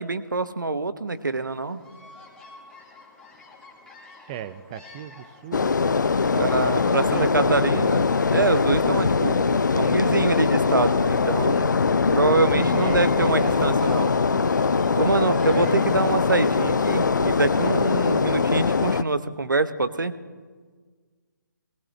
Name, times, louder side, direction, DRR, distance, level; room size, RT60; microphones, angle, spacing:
voice 1, 0.0-1.8 6.4-11.7 12.1-14.1 15.0-20.1, right 3 dB, 75° right, 12 dB, 1.0 m, -25 dB
Bird vocalization bird call bird song, 1.1-18.3, left 3 dB, 5° left, 1.7 m, -48 dB
voice 2, 4.3-5.7 6.3-7.9 12.4-13.9 15.0-16.2, right 11 dB, 20° right, 14 dB, 0.4 m, -37 dB
sound 1, 5.5-19.0, left 5 dB, 65° left, 0.5 m, -22 dB
19.0 x 18.0 x 3.3 m, 1.5 s
figure-of-eight pair, 145°, 11 cm